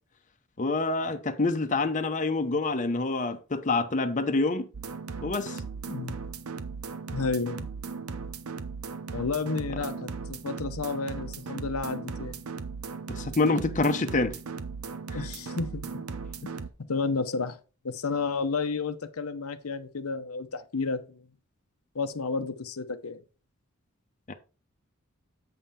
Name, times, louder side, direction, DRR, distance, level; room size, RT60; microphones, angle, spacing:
voice 1, 0.6-4.7 5.2-5.6 13.1-14.3 15.1-15.3 24.3-24.4, left 3 dB, 35° left, 0.8 m, -27 dB
sound 1, 4.7-16.7, right 5 dB, 85° right, 0.8 m, -37 dB
voice 2, 7.1-7.7 9.1-12.4 15.1-16.0 16.4-16.5 16.9-17.6 17.8-21.2 21.9-23.2, left 4 dB, 85° left, 0.8 m, -31 dB
7.9 x 5.6 x 4.2 m
head